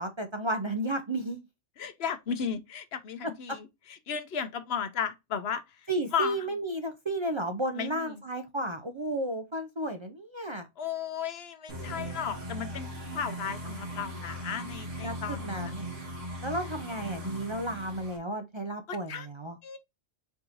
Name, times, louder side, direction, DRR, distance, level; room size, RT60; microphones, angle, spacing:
voice 1, 0.0-1.4 5.9-10.7 15.0-15.9 16.4-19.6, right 1 dB, 35° right, 0.4 m, -33 dB
voice 2, 1.8-3.7 4.1-5.6 6.1-6.4 7.8-8.2 10.8-12.9 13.1-15.7 18.9-19.3 19.6-19.8, left 7 dB, 60° left, 0.9 m, -34 dB
sound 1, 11.7-18.2, right 1 dB, 80° right, 2.1 m, -39 dB
4.6 x 4.2 x 2.6 m
omnidirectional pair, 1.2 m